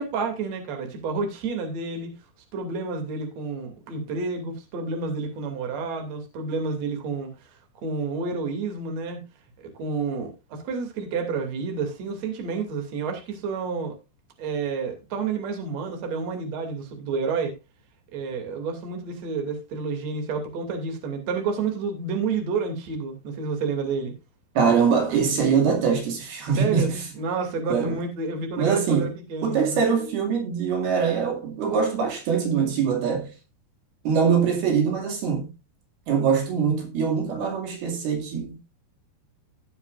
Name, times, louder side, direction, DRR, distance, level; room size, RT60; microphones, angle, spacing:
voice 1, 0.0-2.1 2.5-7.5 7.8-9.2 9.6-14.0 14.4-17.5 18.1-24.1 26.4-26.9 27.1-29.8, right 4 dB, 45° right, 3.3 m, -30 dB
voice 2, 24.6-27.0 27.7-28.0 28.6-29.1 29.4-33.3 34.1-35.5 36.1-38.7, right 6 dB, 75° right, 4.2 m, -23 dB
17.5 x 7.0 x 2.4 m
omnidirectional pair, 4.6 m